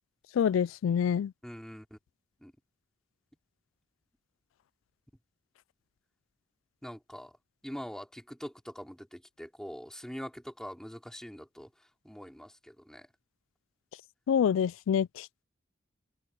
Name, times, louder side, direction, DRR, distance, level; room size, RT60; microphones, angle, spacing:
voice 1, 0.3-1.3 14.3-15.4, left 8 dB, 90° left, 0.3 m, -27 dB
voice 2, 1.4-2.0 2.4-2.5 6.8-7.3 7.6-11.7 12.0-13.1, equal, 5° left, 3.8 m, -43 dB
head